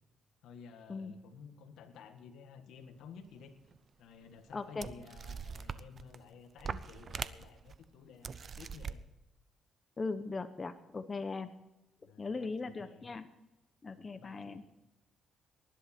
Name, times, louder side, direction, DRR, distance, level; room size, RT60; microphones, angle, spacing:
voice 1, 0.4-3.5 4.0-9.0 12.0-13.0 13.9-14.6, left 6 dB, 85° left, 8 dB, 1.6 m, -53 dB
sound 1, 3.7-3.8 4.5-4.6 4.8-6.2 6.6-7.8 8.2-9.0, right 6 dB, 45° right, 0.7 m, -42 dB
voice 2, 4.5-4.9 10.0-11.5 12.2-13.3 13.8-14.6, left 4 dB, 30° left, 10 dB, 0.9 m, -39 dB
19.5 x 11.5 x 4.4 m, 0.95 s
cardioid pair, 90°, 0 cm